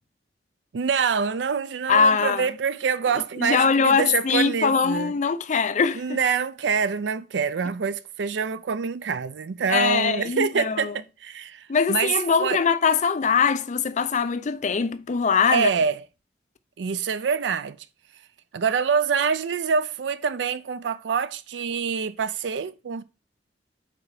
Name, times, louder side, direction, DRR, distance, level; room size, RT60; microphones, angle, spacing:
voice 1, 0.7-5.1 6.0-12.6 15.5-16.0 16.8-17.8 18.5-23.0, right 6 dB, 85° right, 0.4 m, -26 dB
voice 2, 1.9-2.5 3.4-6.2 9.7-10.9 11.7-15.7, left 6 dB, 45° left, 0.5 m, -22 dB
5.0 x 4.4 x 4.8 m
head